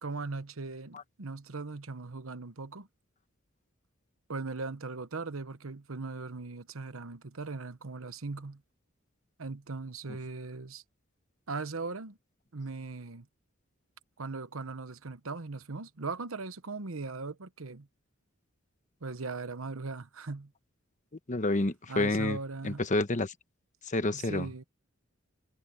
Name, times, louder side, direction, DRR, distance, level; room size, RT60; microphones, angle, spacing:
voice 1, 0.0-2.9 4.3-8.6 9.4-10.8 11.5-12.2 12.5-13.3 14.2-17.9 19.0-20.5 21.9-22.8 24.1-24.6, right 3 dB, 85° right, 1.1 m, -39 dB
voice 2, 21.3-22.4 22.6-23.3 23.9-24.5, left 2 dB, 40° left, 1.1 m, -29 dB
head